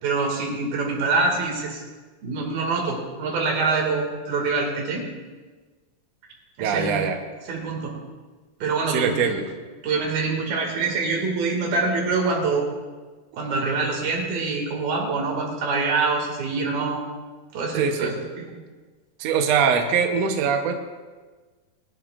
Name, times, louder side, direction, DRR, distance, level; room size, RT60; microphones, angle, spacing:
voice 1, 0.0-1.8 2.2-5.1 6.6-7.0 7.4-8.0 8.6-9.5 9.8-12.7 13.4-17.0 17.5-18.5, right 4 dB, 65° right, -1 dB, 4.0 m, -25 dB
voice 2, 6.6-7.2 8.9-9.4 17.7-18.1 19.2-20.7, right 6 dB, 85° right, 3 dB, 1.4 m, -22 dB
22.0 x 11.5 x 2.5 m, 1.4 s
omnidirectional pair, 4.6 m